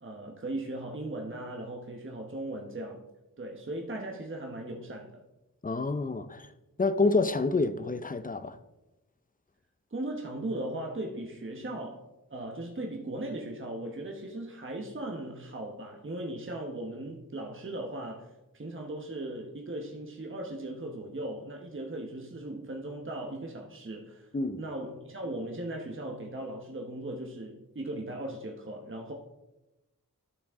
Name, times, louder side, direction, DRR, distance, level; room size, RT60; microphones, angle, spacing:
voice 1, 0.0-3.0 3.4-5.2 9.9-12.0 12.3-18.3 18.5-24.3 24.6-29.1, right 1 dB, 35° right, 1.1 m, -38 dB
voice 2, 5.6-6.5 6.8-8.6 24.3-24.6, left 3 dB, 25° left, 0.5 m, -28 dB
12.0 x 6.1 x 3.6 m
wide cardioid pair, 85°, 34 cm